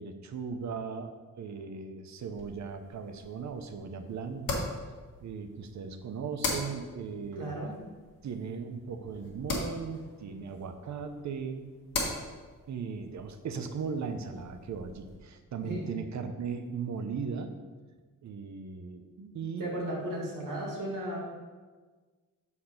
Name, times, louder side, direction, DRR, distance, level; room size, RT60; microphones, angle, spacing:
voice 1, 0.0-4.7 5.2-7.6 8.2-11.7 12.7-17.5 18.2-19.1 19.3-19.7, right 5 dB, 60° right, 7 dB, 0.7 m, -38 dB
sound 1, 2.3-15.2, left 3 dB, 90° left, 1.7 m, -40 dB
voice 2, 7.4-7.7 15.6-15.8 19.2-19.3 19.6-21.2, right 1 dB, 75° right, -2 dB, 2.0 m, -35 dB
6.7 x 4.2 x 5.6 m, 1.4 s
wide cardioid pair, 160°, 33 cm